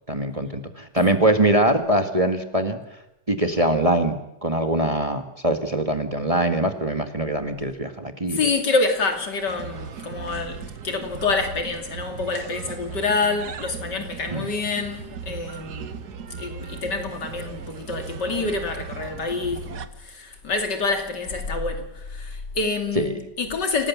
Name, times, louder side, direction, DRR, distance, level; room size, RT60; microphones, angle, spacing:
voice 1, 0.1-2.8 3.3-8.4 14.3-14.5 22.9-23.2, right 1 dB, 20° right, 1.7 m, -23 dB
voice 2, 8.3-15.9 16.4-19.8 20.1-23.9, left 3 dB, 75° left, 3.3 m, -27 dB
sound 1, 9.5-19.9, right 6 dB, 65° right, 1.7 m, -37 dB
27.5 x 18.0 x 7.4 m
omnidirectional pair, 1.9 m